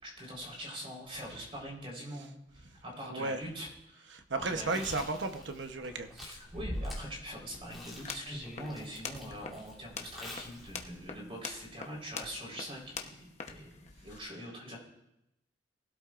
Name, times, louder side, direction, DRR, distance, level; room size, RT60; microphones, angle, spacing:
voice 1, 0.0-4.1 4.5-4.9 6.1-13.2 13.5-14.8, equal, 30° right, -2 dB, 4.1 m, -43 dB
voice 2, 3.0-3.4 4.1-6.1, right 3 dB, 85° right, 7 dB, 1.0 m, -34 dB
Chewing mastication, 4.5-11.0, left 1 dB, ahead, 3.0 m, -45 dB
sound 1, 7.9-14.2, left 5 dB, 40° left, 1.0 m, -45 dB
19.5 x 12.5 x 2.5 m, 0.87 s
head